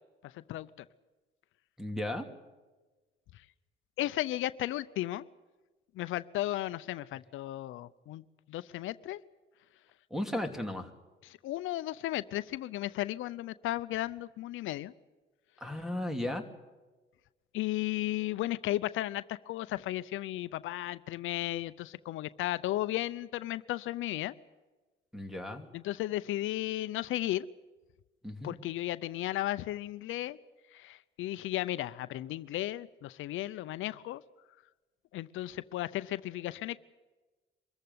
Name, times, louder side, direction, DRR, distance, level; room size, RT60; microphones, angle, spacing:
voice 1, 0.3-0.7 4.0-5.2 6.0-9.2 11.2-14.9 17.5-24.3 25.7-27.5 28.4-30.4 30.7-34.2 35.1-36.8, left 15 dB, 85° left, 15 dB, 0.6 m, -35 dB
voice 2, 1.8-2.3 10.1-10.9 15.6-16.4 25.1-25.7 28.2-28.6, left 1 dB, ahead, 7 dB, 2.8 m, -35 dB
24.5 x 14.5 x 9.5 m, 1.2 s
cardioid pair, 90°, 20 cm